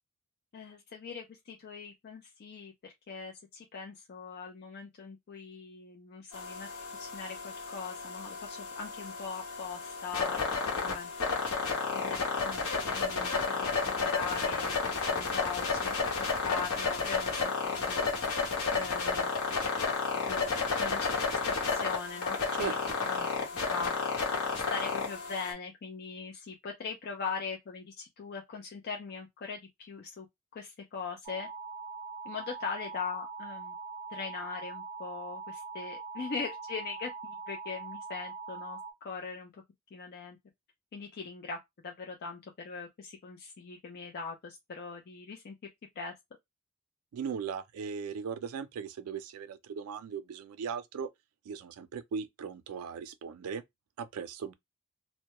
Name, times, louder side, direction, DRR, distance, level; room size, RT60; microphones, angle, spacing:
voice 1, 0.5-6.7 7.0-10.4 10.8-11.1 11.9-13.7 14.0-15.9 16.2-17.5 17.8-18.0 18.7-19.3 20.3-21.4 21.6-22.8 23.0-23.3 23.7-23.9 24.5-30.3 30.5-31.5 32.2-33.7 34.1-39.5 39.9-40.4 40.9-41.6 41.8-45.5 46.0-46.1, left 5 dB, 45° left, 0.4 m, -41 dB
sound 1, 6.3-25.5, left 4 dB, 75° left, 1.0 m, -32 dB
voice 2, 22.5-23.0 47.1-51.1 51.5-53.6 54.0-54.5, right 6 dB, 75° right, 0.3 m, -38 dB
sound 2, 31.2-38.9, right 4 dB, 20° right, 0.5 m, -42 dB
2.2 x 2.0 x 2.8 m
head